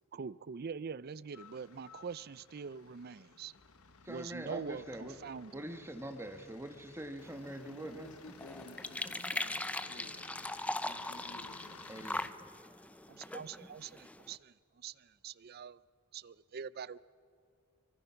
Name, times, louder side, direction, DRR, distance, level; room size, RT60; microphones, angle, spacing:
voice 1, 0.1-3.5 4.1-5.7 13.1-15.8 16.1-17.0, right 6 dB, 45° right, 19 dB, 0.4 m, -44 dB
sound 1, 1.3-12.3, left 5 dB, 80° left, 1.2 m, -57 dB
voice 2, 4.0-5.2 5.5-8.1 11.9-12.3, right 1 dB, 10° right, 5 dB, 1.4 m, -44 dB
sound 2, 7.2-14.4, left 2 dB, 5° left, 0.5 m, -41 dB
voice 3, 7.4-12.5, left 1 dB, 55° left, 6 dB, 1.8 m, -55 dB
24.5 x 23.0 x 5.8 m, 2.4 s
head